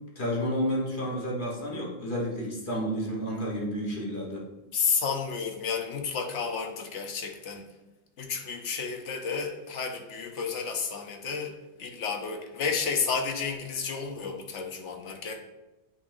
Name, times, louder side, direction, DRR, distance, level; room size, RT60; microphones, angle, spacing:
voice 1, 0.1-4.4, equal, 50° left, -3 dB, 1.5 m, -31 dB
voice 2, 4.7-7.6 8.2-15.4, left 5 dB, 90° left, 5 dB, 1.2 m, -31 dB
7.8 x 5.5 x 2.6 m, 1.0 s
omnidirectional pair, 1.2 m